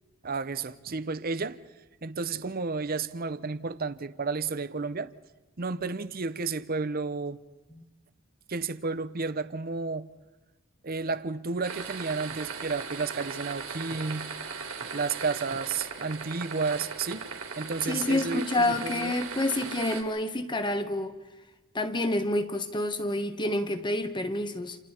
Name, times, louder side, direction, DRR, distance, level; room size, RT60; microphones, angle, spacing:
voice 1, 0.2-1.6 2.0-5.1 5.6-7.4 8.5-10.1 10.8-14.3 14.9-17.3 17.6-19.1, right 4 dB, 45° right, 0.8 m, -32 dB
sound 1, 11.6-20.0, right 5 dB, 85° right, 3.6 m, -38 dB
voice 2, 17.8-21.1 21.7-24.8, left 1 dB, 20° left, 1.4 m, -28 dB
28.5 x 28.0 x 4.5 m
head